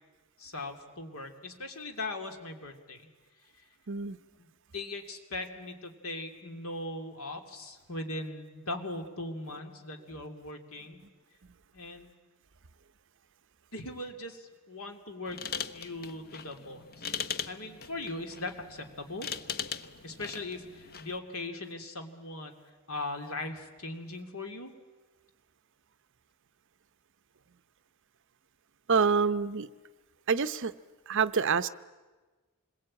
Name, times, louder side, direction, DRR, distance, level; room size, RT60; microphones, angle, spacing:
voice 1, 0.4-3.1 3.4-3.6 4.4-4.5 4.7-11.0 11.7-12.3 13.7-15.4 15.7-19.3 20.0-22.6 22.9-24.7, left 2 dB, 70° left, 2.7 m, -40 dB
voice 2, 3.9-4.2 28.9-29.7 30.3-30.7 31.1-31.7, right 5 dB, 55° right, 0.7 m, -26 dB
sound 1, 15.3-21.2, left 7 dB, 45° left, 0.9 m, -40 dB
27.0 x 21.5 x 8.7 m
head